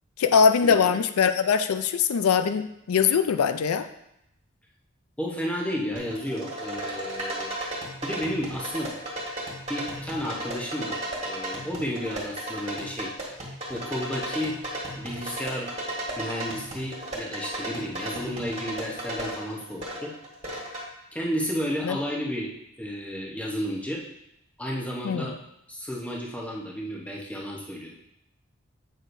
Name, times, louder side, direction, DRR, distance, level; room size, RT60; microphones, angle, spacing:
voice 1, 0.2-3.9 21.8-22.0 25.0-25.3, left 6 dB, 85° left, 9 dB, 0.4 m, -22 dB
voice 2, 5.2-7.5 8.0-8.9 9.7-13.3 13.7-14.6 15.0-15.7 16.2-20.1 21.1-22.5 22.8-24.0 24.6-25.3 25.7-27.9, equal, 5° left, -3 dB, 0.8 m, -32 dB
sound 1, 6.0-20.8, right 1 dB, 30° right, 1.7 m, -35 dB
8.0 x 6.2 x 2.6 m, 0.80 s
head